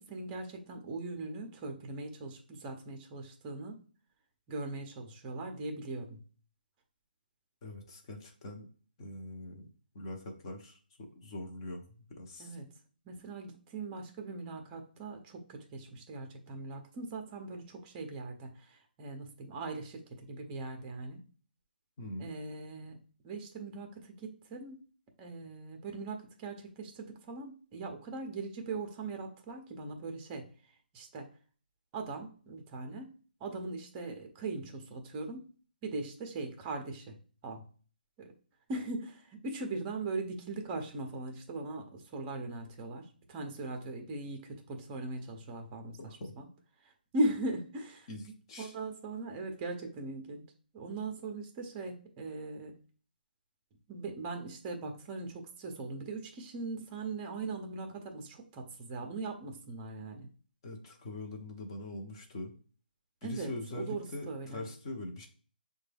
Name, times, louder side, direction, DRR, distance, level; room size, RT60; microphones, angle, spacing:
voice 1, 0.0-3.8 4.5-6.2 12.4-12.7 13.0-21.3 22.2-23.0 23.2-24.8 25.2-30.5 30.9-31.3 31.9-33.1 33.4-35.5 35.8-37.1 37.4-37.6 38.2-38.3 38.7-46.5 46.8-48.1 48.6-50.4 50.7-52.8 53.9-60.3 63.2-64.7, right 2 dB, 20° right, 4 dB, 0.7 m, -40 dB
voice 2, 7.6-8.7 9.0-9.6 9.9-11.8 12.1-12.5 22.0-22.3 46.0-46.3 48.1-48.7 60.6-62.5 63.2-65.3, left 1 dB, 30° left, 3 dB, 0.8 m, -42 dB
6.7 x 2.3 x 3.3 m, 0.41 s
hypercardioid pair, 160°, 5 cm